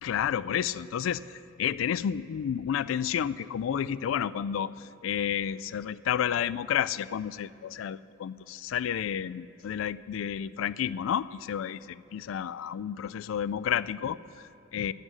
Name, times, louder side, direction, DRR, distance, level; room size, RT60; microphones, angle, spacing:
voice 1, 0.0-14.9, left 9 dB, 80° left, 17 dB, 0.3 m, -31 dB
12.5 x 10.0 x 6.3 m, 2.8 s
head